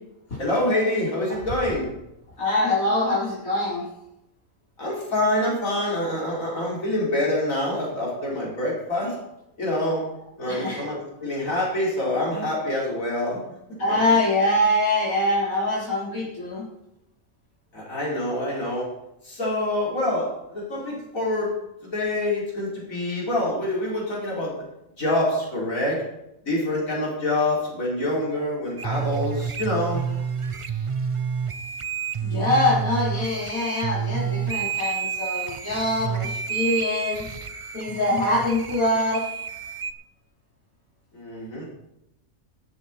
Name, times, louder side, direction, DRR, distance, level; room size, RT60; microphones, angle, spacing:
voice 1, 0.4-1.9 4.8-9.2 9.6-10.0 10.4-13.4 17.7-18.9 19.2-21.5 21.8-24.6 25.0-26.0 26.4-30.1 41.1-41.7, left 1 dB, 70° left, -5 dB, 4.7 m, -26 dB
voice 2, 2.4-3.8 10.5-10.9 13.8-16.7 32.2-37.3 37.7-39.2, left 1 dB, 90° left, -8 dB, 4.3 m, -24 dB
sound 1, 28.8-39.9, right 7 dB, 50° right, 0.4 m, -29 dB
13.5 x 11.0 x 4.4 m, 0.86 s
omnidirectional pair, 1.4 m